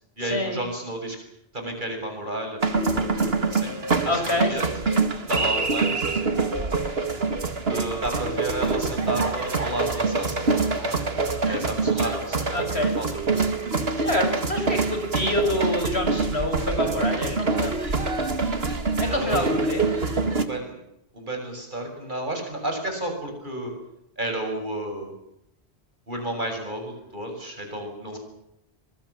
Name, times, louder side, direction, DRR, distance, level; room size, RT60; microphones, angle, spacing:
voice 1, 0.2-1.2 1.5-2.6 2.9-3.7 4.0-4.6 5.3-6.5 7.7-11.1 11.5-13.5 19.1-19.5 20.4-20.7 21.1-23.7 24.2-25.1 26.1-28.2, right 1 dB, 45° right, 4 dB, 7.5 m, -32 dB
sound 1, 2.6-20.4, right 3 dB, 65° right, 2.4 m, -25 dB
voice 2, 4.0-4.8 11.4-11.6 12.5-12.9 14.0-17.9 19.0-19.9, left 1 dB, 75° left, 5 dB, 6.6 m, -27 dB
26.5 x 23.0 x 7.3 m, 0.79 s
omnidirectional pair, 1.1 m